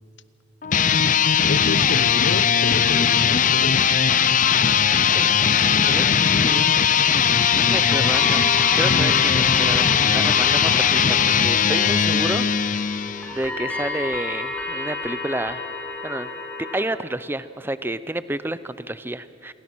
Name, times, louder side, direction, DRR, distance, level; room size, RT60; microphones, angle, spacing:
sound 1, 0.6-13.4, left 7 dB, 40° left, 0.6 m, -19 dB
voice 1, 1.5-3.9, left 3 dB, 65° left, 0.9 m, -30 dB
voice 2, 5.1-6.6 6.9-12.9 13.3-15.7 16.0-16.3 16.7-19.5, right 1 dB, 10° right, 0.6 m, -30 dB
sound 2, 6.2-16.8, left 3 dB, 10° left, 2.6 m, -32 dB
27.5 x 22.5 x 6.2 m
head